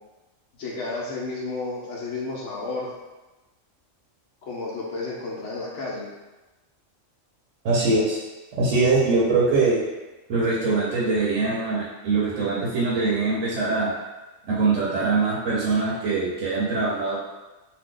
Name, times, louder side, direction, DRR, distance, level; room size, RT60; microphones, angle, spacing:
voice 1, 0.6-2.9 4.4-6.1, left 3 dB, 70° left, -3 dB, 0.9 m, -32 dB
voice 2, 7.6-8.2 8.6-9.8 10.3-13.9 14.4-17.2, right 3 dB, 70° right, -6 dB, 1.0 m, -22 dB
2.7 x 2.1 x 3.7 m, 1.1 s
omnidirectional pair, 1.4 m